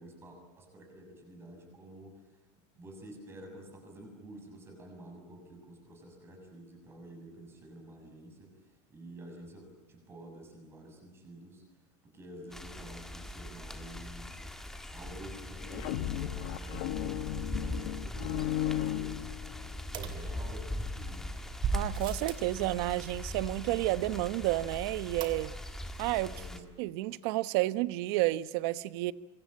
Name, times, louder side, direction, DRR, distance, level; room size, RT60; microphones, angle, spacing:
voice 1, 0.0-2.3 2.8-11.6 12.0-14.4 14.9-19.5 20.0-21.4 26.2-26.7, right 1 dB, 15° right, 7.1 m, -50 dB
sound 1, 12.5-26.6, left 1 dB, 5° left, 1.6 m, -40 dB
sound 2, 15.6-19.8, left 14 dB, 65° left, 1.0 m, -35 dB
sound 3, 19.9-20.9 21.6-22.5 25.2-25.8 26.1-26.2 26.4-26.5, right 7 dB, 35° right, 2.6 m, -38 dB
voice 2, 21.7-25.5 26.0-26.3 26.8-29.1, right 18 dB, 60° right, 1.0 m, -31 dB
27.0 x 25.0 x 8.8 m
cardioid pair, 180°, 15 cm